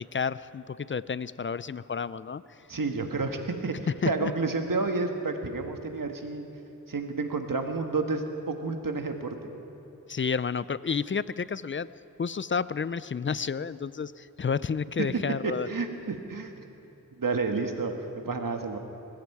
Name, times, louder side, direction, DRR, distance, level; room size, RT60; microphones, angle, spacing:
voice 1, 0.0-2.4 4.0-4.3 10.1-11.9 12.2-15.7, left 6 dB, 35° left, 17 dB, 0.4 m, -30 dB
voice 2, 2.7-6.4 6.9-9.5 15.4-16.5 17.2-18.8, right 3 dB, 65° right, 5 dB, 1.4 m, -30 dB
20.5 x 14.5 x 4.8 m, 3.0 s
wide cardioid pair, 45°, 35 cm